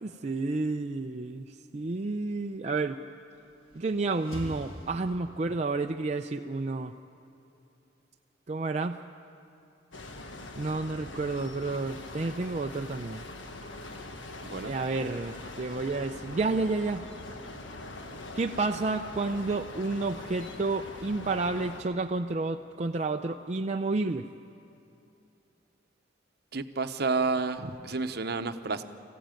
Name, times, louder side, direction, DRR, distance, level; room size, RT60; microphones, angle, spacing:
voice 1, 0.0-1.5 1.7-3.0 3.7-6.9 8.5-9.0 10.6-13.2 14.6-17.1 18.4-24.3, right 3 dB, 35° right, 4 dB, 0.5 m, -30 dB
sound 1, 3.3-5.7, equal, 35° left, 2.7 m, -44 dB
sound 2, 9.9-21.8, left 2 dB, 80° left, 1.5 m, -42 dB
voice 2, 26.5-28.8, right 4 dB, 55° right, 9 dB, 0.9 m, -30 dB
24.5 x 15.5 x 9.1 m, 2.7 s
head